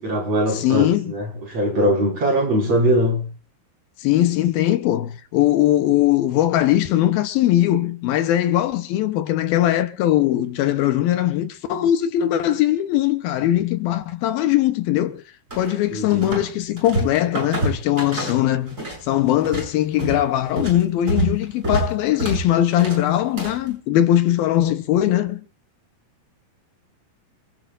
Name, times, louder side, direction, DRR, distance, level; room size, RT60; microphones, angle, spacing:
voice 1, 0.0-3.3 15.9-16.2, equal, 45° right, 6.7 m, -21 dB
voice 2, 0.5-1.1 4.0-15.2 15.6-18.8 19.0-25.4, left 13 dB, 75° left, 2.7 m, -20 dB
sound 1, 15.5-16.5 16.8-19.0 19.3-23.7, right 2 dB, 20° right, 7.7 m, -27 dB
27.5 x 10.5 x 2.6 m
omnidirectional pair, 4.4 m